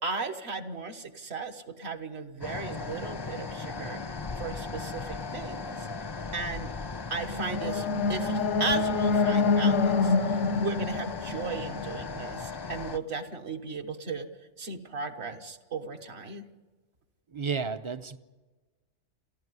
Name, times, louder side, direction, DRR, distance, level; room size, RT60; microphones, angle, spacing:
voice 1, 0.0-4.0 4.4-5.9 6.3-6.7 7.1-14.3 14.6-16.5, right 4 dB, 60° right, 5 dB, 1.5 m, -36 dB
sound 1, 2.4-13.0, left 4 dB, 25° left, 0.6 m, -37 dB
sound 2, 7.2-12.3, left 4 dB, 85° left, 1.2 m, -26 dB
voice 2, 17.3-18.2, right 5 dB, 30° right, 12 dB, 0.6 m, -32 dB
29.5 x 12.0 x 9.6 m, 1.3 s
omnidirectional pair, 1.3 m